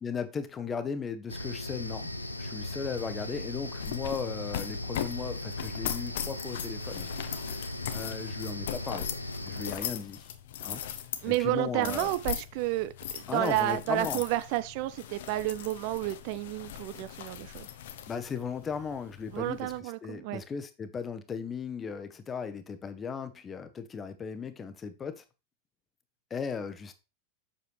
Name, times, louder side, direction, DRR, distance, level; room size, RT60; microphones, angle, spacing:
voice 1, 0.0-2.1 2.4-7.1 7.5-7.6 7.9-9.1 9.4-10.3 10.6-10.8 11.3-12.1 13.3-14.2 18.1-19.7 20.0-25.2 26.3-26.9, left 6 dB, 20° left, 0.9 m, -36 dB
sound 1, 1.3-9.7, left 1 dB, 85° left, 0.7 m, -38 dB
sound 2, 2.6-19.8, left 10 dB, 55° left, 0.8 m, -40 dB
voice 2, 11.2-17.7 19.3-20.4, right 16 dB, 45° right, 0.4 m, -31 dB
7.7 x 6.6 x 3.2 m
figure-of-eight pair, 90°, 0 cm